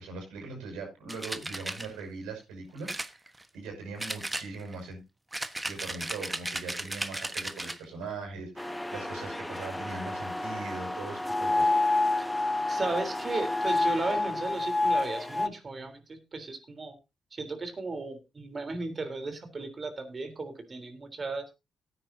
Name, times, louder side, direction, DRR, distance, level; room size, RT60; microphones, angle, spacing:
voice 1, 0.0-5.0 5.6-11.8, right 3 dB, 85° right, 1 dB, 6.1 m, -41 dB
sound 1, 1.1-1.9 2.9-3.7 4.0-4.8 5.3-7.8, right 1 dB, 15° right, 1.3 m, -35 dB
sound 2, 8.6-15.5, left 2 dB, 10° left, 1.0 m, -29 dB
voice 2, 12.7-17.0 17.3-21.4, right 3 dB, 45° right, 7 dB, 3.6 m, -35 dB
18.0 x 9.6 x 2.7 m, 0.25 s
hypercardioid pair, 45°, 0 cm